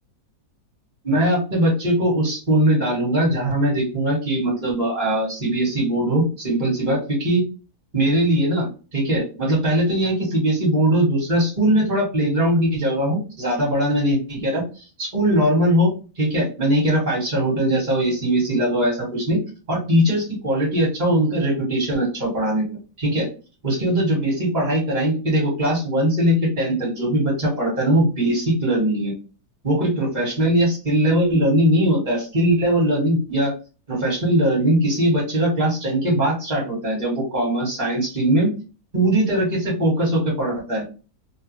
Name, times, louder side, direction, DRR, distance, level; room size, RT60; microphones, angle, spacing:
voice 1, 1.0-7.4 7.9-14.6 15.0-15.9 16.2-19.4 19.7-22.7 23.0-23.3 23.6-29.1 29.6-33.5 33.9-38.5 38.9-40.8, right 1 dB, 30° right, -2 dB, 1.4 m, -20 dB
2.9 x 2.2 x 3.0 m, 0.34 s
omnidirectional pair, 1.7 m